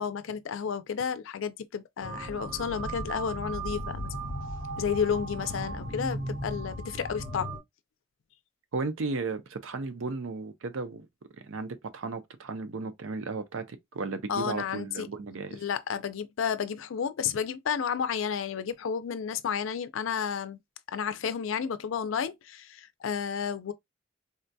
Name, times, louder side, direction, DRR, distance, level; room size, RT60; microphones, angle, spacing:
voice 1, 0.0-4.3 4.8-7.5 14.3-15.1 15.5-20.6 20.9-23.7, left 7 dB, 85° left, 0.4 m, -31 dB
sound 1, 2.0-7.6, right 1 dB, 40° right, 1.2 m, -36 dB
voice 2, 8.7-11.1 11.4-15.7, right 3 dB, 90° right, 0.6 m, -35 dB
3.7 x 2.2 x 2.6 m
head